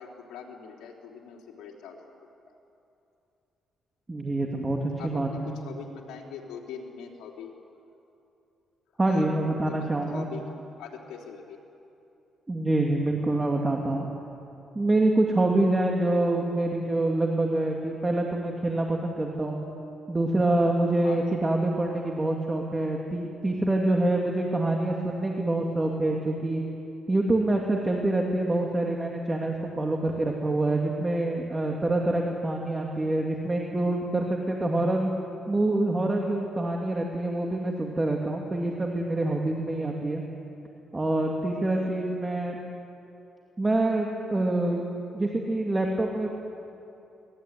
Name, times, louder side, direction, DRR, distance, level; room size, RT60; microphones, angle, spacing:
voice 1, 0.0-2.0 5.0-7.5 9.0-9.3 9.6-10.4 10.8-11.6 15.3-15.4 21.0-21.3 41.7-42.0, left 6 dB, 85° left, -1 dB, 4.1 m, -42 dB
voice 2, 4.1-5.5 9.0-10.3 12.5-14.1 14.7-19.7 20.1-26.6 27.1-35.1 35.5-40.2 40.9-42.6 43.6-44.8 45.1-46.3, right 2 dB, 20° right, 0 dB, 2.7 m, -26 dB
24.0 x 20.0 x 9.5 m, 2.8 s
cardioid pair, 90°, 0 cm